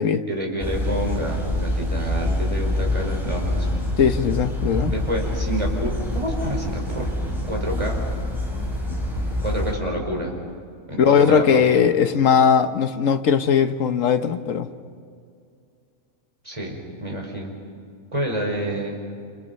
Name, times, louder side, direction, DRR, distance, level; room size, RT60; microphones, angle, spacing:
voice 1, 0.3-3.8 4.9-7.1 7.5-8.0 9.4-10.4 10.9-11.8 16.4-17.5 18.1-19.0, right 1 dB, 25° right, 0 dB, 5.0 m, -28 dB
sound 1, 0.6-9.7, left 1 dB, ahead, 6.2 m, -26 dB
voice 2, 4.0-4.9 11.0-14.7, left 7 dB, 70° left, 9 dB, 1.4 m, -19 dB
29.0 x 28.0 x 5.5 m, 2.3 s
omnidirectional pair, 1.4 m